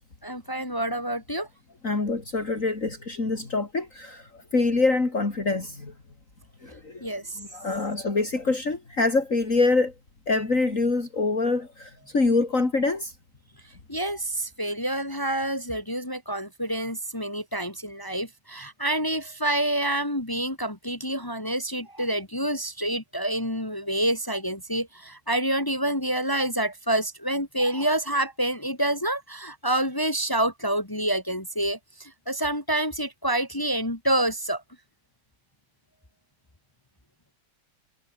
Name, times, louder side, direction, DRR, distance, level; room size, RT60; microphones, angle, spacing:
voice 1, 0.2-1.5 7.0-7.2 13.9-31.8 32.3-34.6, right 1 dB, 10° left, 2.2 m, -27 dB
voice 2, 1.8-5.9 6.6-7.1 7.4-9.9 10.3-13.1, left 3 dB, 50° left, 4.0 m, -25 dB
omnidirectional pair, 1.8 m